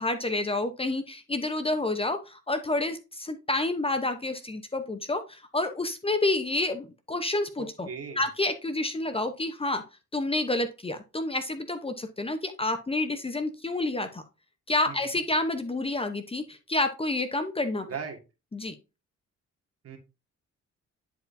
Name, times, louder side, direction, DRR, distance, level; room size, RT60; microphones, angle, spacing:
voice 1, 0.0-7.9 8.2-9.8 10.1-14.2 14.7-17.9 18.5-18.7, left 2 dB, 20° left, 9 dB, 0.8 m, -29 dB
voice 2, 7.6-8.3 14.9-15.1 17.9-18.2 19.8-20.0, right 6 dB, 50° right, 3 dB, 1.7 m, -38 dB
10.0 x 4.7 x 2.6 m, 0.29 s
cardioid pair, 90°, 30 cm